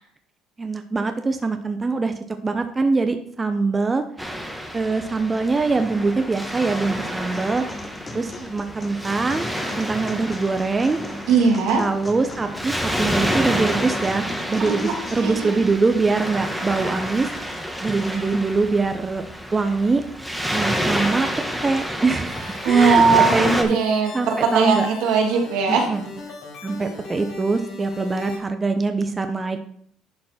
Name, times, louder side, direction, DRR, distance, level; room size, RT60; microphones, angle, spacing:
voice 1, 0.6-2.1 2.4-4.0 4.7-7.6 8.1-9.5 9.8-11.0 11.8-17.3 17.8-19.2 19.5-20.0 20.5-21.3 21.6-23.0 23.3-23.8 24.1-24.9 25.7-26.0 26.6-29.7, right 3 dB, 25° right, 7 dB, 0.7 m, -23 dB
Waves surf, 4.2-23.6, equal, ahead, 1.4 m, -29 dB
sound 1, 7.3-15.3, left 2 dB, 25° left, 1.1 m, -38 dB
voice 2, 11.3-11.8 14.6-14.9 15.2-15.6 22.6-25.9, right 5 dB, 80° right, 1 dB, 2.0 m, -19 dB
sound 2, 22.1-28.4, left 3 dB, 65° left, 3.9 m, -38 dB
10.5 x 4.3 x 4.3 m, 0.62 s
supercardioid pair, 90°, 0 cm